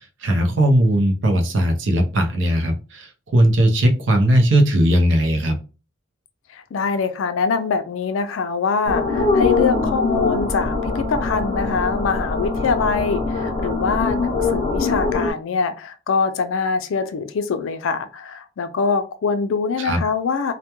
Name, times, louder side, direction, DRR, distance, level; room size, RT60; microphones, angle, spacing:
voice 1, 0.2-3.1 3.3-5.6 19.8-20.0, right 1 dB, 70° right, 0.6 m, -18 dB
voice 2, 6.5-20.5, left 5 dB, 85° left, 0.4 m, -24 dB
sound 1, 8.9-15.3, left 3 dB, 40° left, 0.6 m, -22 dB
2.2 x 2.1 x 2.9 m
head